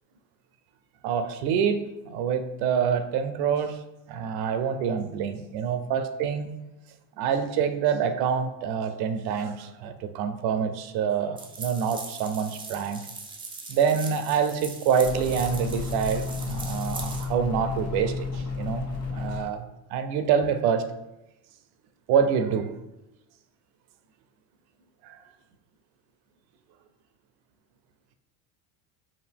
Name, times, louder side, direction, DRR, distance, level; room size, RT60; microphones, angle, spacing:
voice 1, 1.0-3.8 4.1-6.5 7.2-13.0 13.7-18.8 19.1-20.9 22.1-22.7 25.0-25.2, right 7 dB, 60° right, 9 dB, 0.6 m, -26 dB
sound 1, 11.4-17.2, right 3 dB, 10° right, 0.4 m, -40 dB
sound 2, 15.0-19.4, left 4 dB, 35° left, 1.3 m, -32 dB
4.9 x 2.5 x 3.5 m, 0.95 s
supercardioid pair, 125°, 44 cm